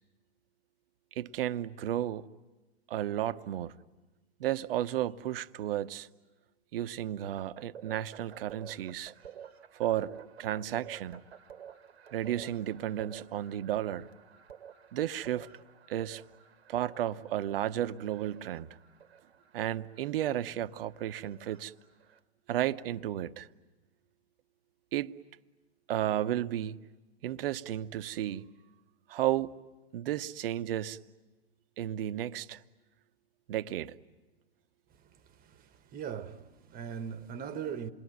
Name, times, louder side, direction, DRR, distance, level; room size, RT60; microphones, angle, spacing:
voice 1, 1.1-2.3 2.9-3.8 4.4-6.1 6.7-9.1 9.7-11.2 12.1-14.1 14.9-15.5 15.9-16.2 16.7-18.8 19.5-21.7 22.5-23.5 24.9-25.1 25.9-26.8 27.2-28.4 29.1-29.5 29.9-31.0 31.8-32.6 33.5-33.9, right 12 dB, 60° right, 0.9 m, -33 dB
sound 1, 7.4-22.2, right 8 dB, 75° right, 1.3 m, -52 dB
voice 2, 35.4-37.9, right 7 dB, 25° right, 1.2 m, -40 dB
28.0 x 22.5 x 9.4 m
hypercardioid pair, 105°, 32 cm